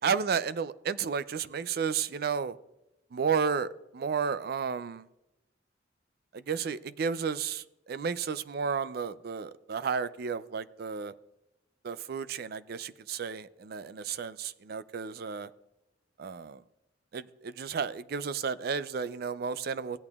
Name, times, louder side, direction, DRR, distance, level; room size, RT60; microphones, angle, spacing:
voice 1, 0.0-2.6 3.1-5.1 6.3-11.1 11.8-15.5 16.2-16.6 17.1-20.0, right 6 dB, 55° right, 0.4 m, -32 dB
16.5 x 8.7 x 2.4 m
head